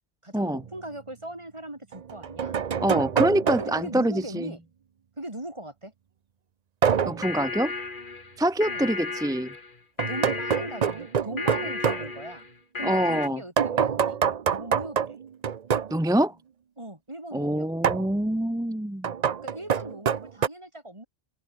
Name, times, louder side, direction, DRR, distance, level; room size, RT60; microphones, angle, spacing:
voice 1, 0.2-2.6 3.6-4.6 5.2-5.9 8.7-8.8 10.1-12.5 12.8-14.2 14.5-15.2 16.8-17.7 19.4-21.1, right 1 dB, 25° right, 4.2 m, -39 dB
sound 1, 0.6-0.7 1.9-3.9 6.8-7.3 10.0-12.1 13.6-16.0 17.8-18.1 19.0-20.5, right 7 dB, 45° right, 0.7 m, -26 dB
voice 2, 2.8-4.5 7.1-7.7 8.4-9.5 12.8-13.4 15.9-16.3 17.3-19.1, right 1 dB, 5° right, 0.4 m, -25 dB
sound 2, 7.0-13.3, left 3 dB, 50° left, 2.1 m, -34 dB
open air
omnidirectional pair, 1.1 m